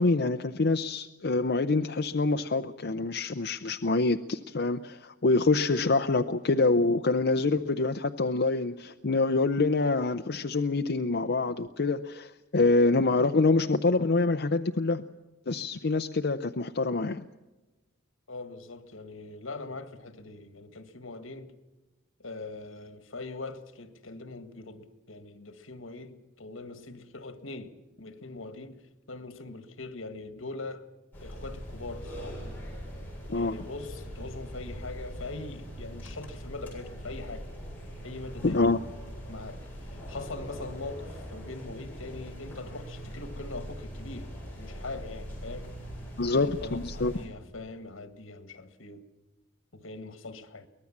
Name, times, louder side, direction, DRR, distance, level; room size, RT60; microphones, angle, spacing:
voice 1, 0.0-15.1 15.5-17.2 33.3-33.6 38.4-38.8 46.2-47.1, left 3 dB, 55° left, 0.6 m, -26 dB
voice 2, 18.3-21.5 22.2-30.9 31.2-32.4 33.3-37.5 38.0-38.6 39.3-44.3 44.6-45.8 46.2-49.0 49.7-50.7, left 3 dB, 80° left, 1.7 m, -42 dB
sound 1, 31.1-47.3, equal, 10° left, 7.4 m, -41 dB
23.5 x 19.0 x 7.3 m
head